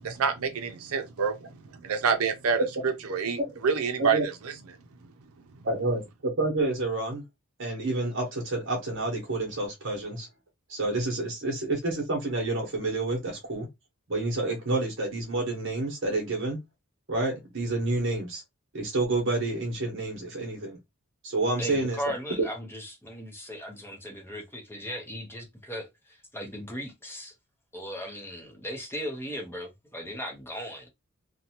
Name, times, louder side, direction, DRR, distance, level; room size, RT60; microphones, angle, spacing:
voice 1, 0.0-1.3 1.8-3.4 3.6-4.2, right 6 dB, 75° right, 0.5 m, -27 dB
voice 2, 5.6-7.2 7.6-10.3 10.7-13.7 14.1-16.6 17.1-18.4 18.7-20.8 21.2-22.0, right 2 dB, 55° right, 0.9 m, -29 dB
voice 3, 21.6-27.3 27.7-30.9, equal, 10° left, 0.6 m, -37 dB
2.7 x 2.1 x 2.8 m
head